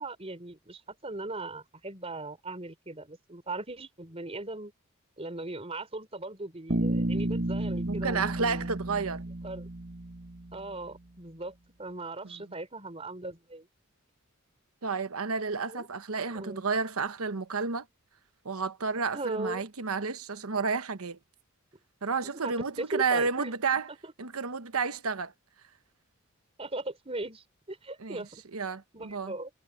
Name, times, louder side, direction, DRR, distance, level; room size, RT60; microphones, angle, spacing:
voice 1, 0.0-4.7 5.2-8.7 9.4-9.7 10.5-13.7 15.7-15.9 16.3-16.6 19.1-19.7 22.2-24.1 26.6-28.4 28.9-29.5, right 2 dB, 25° right, 3.8 m, -39 dB
Bass guitar, 6.7-10.7, right 1 dB, 50° right, 1.7 m, -32 dB
voice 2, 7.9-9.2 12.2-12.4 14.8-17.9 18.4-21.2 22.0-23.9 24.2-25.3 28.0-28.3 28.5-29.3, right 4 dB, 80° right, 1.1 m, -31 dB
head